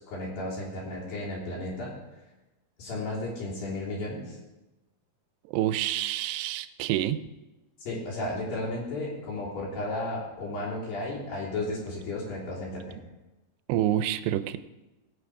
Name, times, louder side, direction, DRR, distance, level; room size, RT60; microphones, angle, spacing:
voice 1, 0.0-1.9 2.8-4.4 7.8-13.0, left 2 dB, 60° left, -5 dB, 4.9 m, -34 dB
voice 2, 5.5-7.2 13.7-14.6, right 12 dB, 90° right, 12 dB, 2.7 m, -27 dB
17.0 x 8.8 x 4.8 m, 1.1 s
omnidirectional pair, 4.8 m